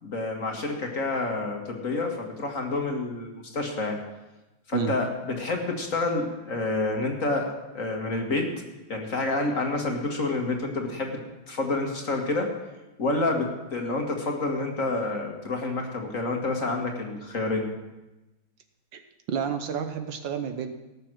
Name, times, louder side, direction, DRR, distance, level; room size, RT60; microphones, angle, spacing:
voice 1, 0.0-4.0 4.7-5.1 5.4-8.5 8.9-11.2 11.5-12.5 13.0-17.7, left 2 dB, 40° left, 2 dB, 1.8 m, -28 dB
voice 2, 19.3-20.7, right 7 dB, 70° right, 7 dB, 1.5 m, -29 dB
17.5 x 6.7 x 6.2 m, 1.0 s
omnidirectional pair, 2.3 m